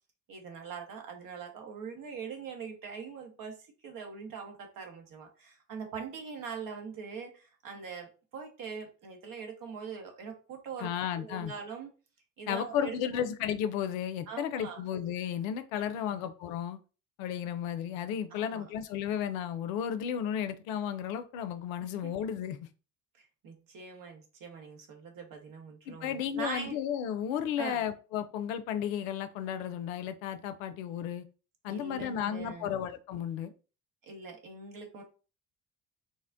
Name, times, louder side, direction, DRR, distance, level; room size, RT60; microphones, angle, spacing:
voice 1, 0.3-10.9 11.2-11.9 12.4-13.2 14.3-14.8 15.9-16.2 18.3-18.7 22.0-22.1 23.2-26.8 27.6-27.8 31.7-32.7 34.0-35.0, right 5 dB, 55° right, 3 dB, 1.1 m, -42 dB
voice 2, 10.8-11.5 12.5-16.8 17.2-22.7 25.9-31.2 31.6-33.5, left 9 dB, 75° left, 10 dB, 0.5 m, -33 dB
3.9 x 2.1 x 2.5 m, 0.34 s
hypercardioid pair, 55°, 40 cm